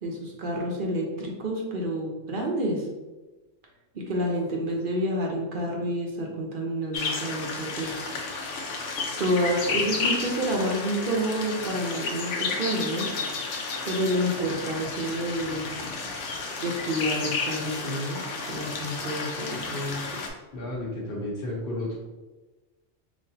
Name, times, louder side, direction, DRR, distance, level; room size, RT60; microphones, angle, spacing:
voice 1, 0.0-2.9 4.1-7.9 9.2-13.1 13.8-15.7 16.6-18.2 18.5-20.2, equal, 50° right, -1 dB, 0.8 m, -29 dB
sound 1, 6.9-20.3, left 4 dB, 75° left, 1.0 m, -32 dB
voice 2, 20.5-22.0, left 1 dB, 50° left, -4 dB, 1.3 m, -32 dB
5.1 x 2.5 x 2.8 m, 1.1 s
omnidirectional pair, 1.2 m